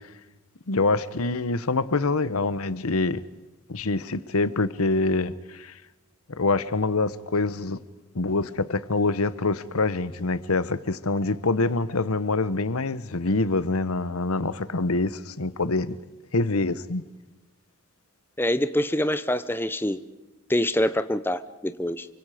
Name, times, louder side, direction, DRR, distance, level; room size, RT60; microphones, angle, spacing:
voice 1, 0.7-3.2 3.7-5.7 6.3-7.8 8.1-16.0 16.3-17.0, left 3 dB, 80° left, 1.0 m, -25 dB
voice 2, 18.4-20.0 20.5-22.1, left 1 dB, 10° left, 0.7 m, -25 dB
28.5 x 25.0 x 5.0 m
head